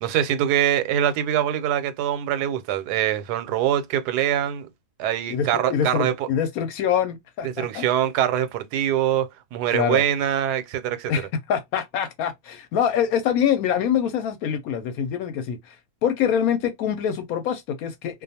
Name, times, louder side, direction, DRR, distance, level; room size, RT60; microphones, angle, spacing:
voice 1, 0.0-4.7 5.0-6.3 7.4-11.1, right 10 dB, 85° right, 1.1 m, -24 dB
voice 2, 5.3-7.8 9.7-10.0 11.1-15.8 16.0-18.2, left 8 dB, 75° left, 1.0 m, -25 dB
2.5 x 2.3 x 2.7 m
omnidirectional pair, 1.7 m